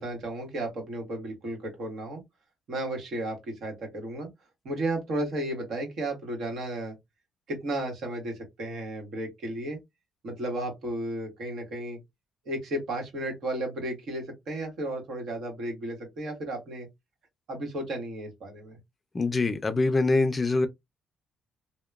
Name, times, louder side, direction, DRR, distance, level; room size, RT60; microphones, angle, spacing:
voice 1, 0.0-2.2 2.7-4.3 4.6-7.0 7.5-9.8 10.2-12.0 12.4-16.9 17.5-18.8, right 1 dB, 70° right, 1.3 m, -33 dB
voice 2, 19.1-20.7, left 3 dB, 30° left, 0.4 m, -24 dB
2.8 x 2.1 x 2.3 m
cardioid pair, 90°, 0 cm